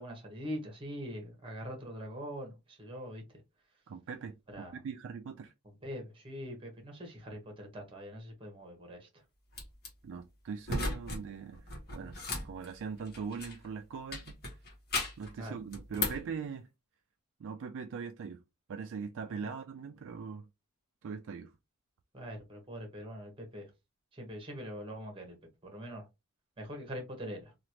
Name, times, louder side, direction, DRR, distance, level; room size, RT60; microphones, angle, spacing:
voice 1, 0.0-3.2 4.5-4.8 5.8-9.1 15.4-15.5 22.1-23.6 24.1-25.4 25.6-26.0 26.6-27.5, equal, 25° right, 1.1 m, -43 dB
voice 2, 3.9-5.5 10.0-11.6 11.9-12.2 12.4-14.4 15.2-16.7 17.4-18.4 18.7-20.5 21.0-21.5, right 5 dB, 60° right, 0.3 m, -41 dB
sound 1, 9.5-9.9 10.6-11.2 11.5-13.7 14.1-15.3 15.7-16.3, left 2 dB, 45° left, 1.1 m, -36 dB
3.0 x 2.4 x 2.8 m
head